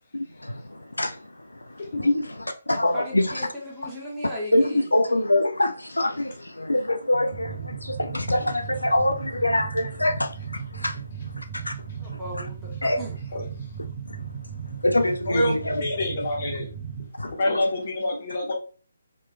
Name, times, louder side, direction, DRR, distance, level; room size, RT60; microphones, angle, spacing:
voice 1, 0.1-1.2 2.0-3.5 4.5-11.0 11.4-11.7 12.8-13.0 14.8-15.8 17.2-17.3, left 1 dB, 85° left, 0.3 m, -24 dB
voice 2, 2.9-4.9 12.0-13.2, equal, 10° right, 1.2 m, -36 dB
sound 1, 7.3-17.1, right 7 dB, 30° right, 0.5 m, -36 dB
voice 3, 15.3-16.7 17.2-18.5, left 1 dB, 45° left, 1.2 m, -27 dB
3.1 x 2.9 x 2.3 m
figure-of-eight pair, 140°, 0 cm